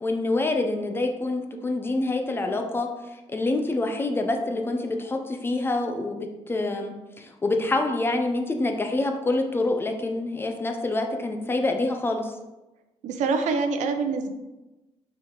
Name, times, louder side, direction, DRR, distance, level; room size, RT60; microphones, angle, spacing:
voice 1, 0.0-2.9 3.3-12.3, left 2 dB, 20° left, 4 dB, 0.5 m, -26 dB
voice 2, 13.0-14.3, right 4 dB, 90° right, 7 dB, 0.7 m, -25 dB
5.4 x 4.8 x 3.7 m, 1.1 s
cardioid pair, 170°, 12 cm